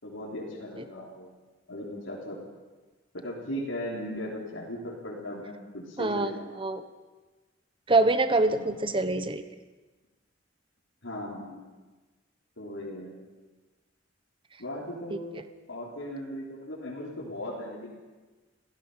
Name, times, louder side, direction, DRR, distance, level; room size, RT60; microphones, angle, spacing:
voice 1, 0.0-1.3 1.7-2.4 3.1-6.6 8.5-8.8 11.0-11.6 12.6-13.1 14.6-15.3 15.7-18.0, left 1 dB, 80° left, -6 dB, 4.0 m, -37 dB
voice 2, 6.0-6.3 6.6-6.8 7.9-9.4, right 2 dB, 25° right, 10 dB, 1.1 m, -25 dB
28.0 x 17.0 x 5.8 m, 1.3 s
head